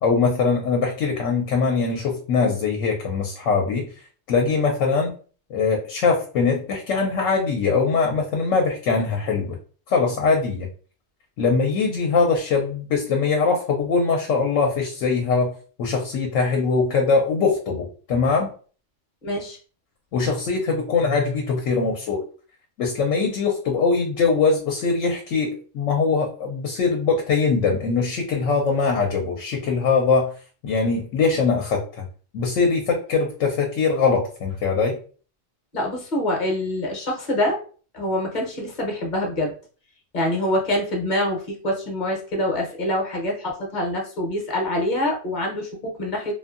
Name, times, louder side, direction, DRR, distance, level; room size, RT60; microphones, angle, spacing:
voice 1, 0.0-3.9 4.3-5.1 5.5-9.6 9.9-10.7 11.4-15.5 15.8-18.5 20.1-22.2 22.8-30.3 30.6-32.0 32.3-35.0, left 4 dB, 75° left, 2 dB, 0.9 m, -22 dB
voice 2, 19.2-19.6 35.7-37.6 37.9-39.5 40.1-46.3, left 1 dB, 45° left, 0 dB, 0.8 m, -25 dB
2.6 x 2.4 x 2.4 m, 0.40 s
omnidirectional pair, 1.3 m